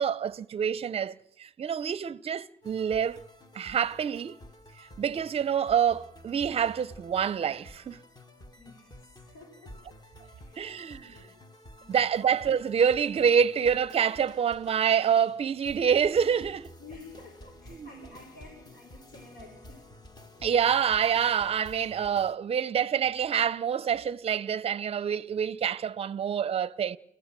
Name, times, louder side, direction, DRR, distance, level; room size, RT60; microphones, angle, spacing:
voice 1, 0.0-3.3 3.5-4.4 5.0-8.0 10.6-11.2 11.9-16.7 17.7-17.9 20.4-27.0, right 8 dB, 35° right, 0.7 m, -27 dB
sound 1, 2.6-22.4, left 1 dB, 25° left, 1.7 m, -51 dB
voice 2, 8.6-10.0 10.3-11.3 11.8-12.1 16.8-19.8, left 3 dB, 65° left, 5.5 m, -51 dB
29.0 x 15.0 x 7.5 m
cardioid pair, 110°, 17 cm